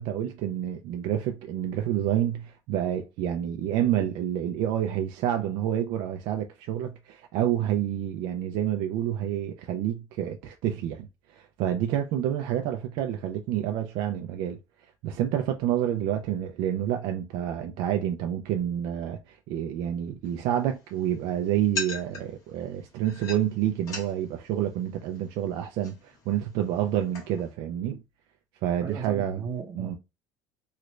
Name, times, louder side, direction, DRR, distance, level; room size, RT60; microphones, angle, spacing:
voice 1, 0.0-11.1 11.3-14.6 15.0-28.0 28.6-29.4 29.8-30.0, right 11 dB, 60° right, 0.4 m, -28 dB
sound 1, 20.2-27.5, left 3 dB, 40° left, 1.3 m, -42 dB
voice 2, 28.8-30.0, right 6 dB, 35° right, 0.8 m, -36 dB
3.2 x 2.5 x 3.0 m
cardioid pair, 150°, 9 cm